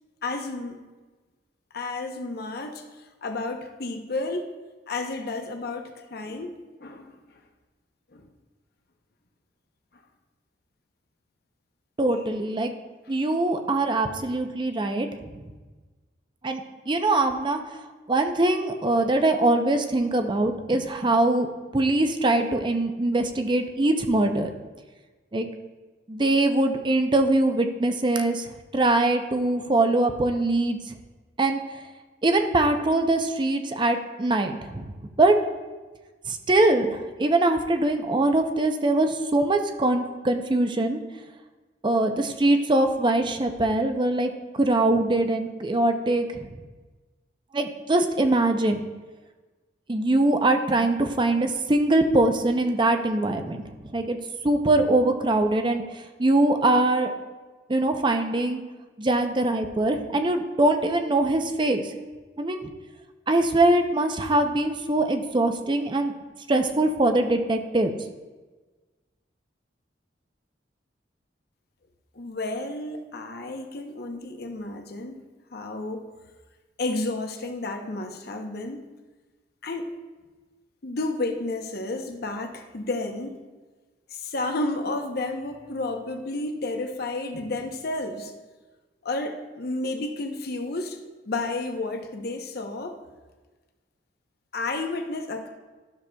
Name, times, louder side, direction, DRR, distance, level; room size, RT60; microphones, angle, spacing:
voice 1, 0.2-0.8 1.7-2.8 3.2-4.6 4.9-7.2 8.1-8.3 72.1-75.2 75.5-76.1 76.8-78.9 79.6-79.9 80.8-83.4 84.1-88.3 89.0-91.0 91.2-93.0 94.5-95.5, left 2 dB, 60° left, 5 dB, 0.8 m, -31 dB
voice 2, 12.0-12.7 13.1-15.1 16.4-16.6 16.9-17.6 18.1-21.5 21.7-24.5 25.3-25.5 26.1-28.4 28.7-30.8 31.4-31.6 32.2-34.9 35.2-35.4 36.3-41.0 41.8-44.3 44.6-46.5 47.5-48.8 49.9-53.6 53.9-54.2 54.4-55.8 56.2-57.1 57.7-58.6 59.0-61.8 62.4-62.6 63.3-66.1 66.5-67.9, right 2 dB, 25° right, 6 dB, 0.6 m, -22 dB
12.5 x 6.6 x 2.3 m, 1.3 s
head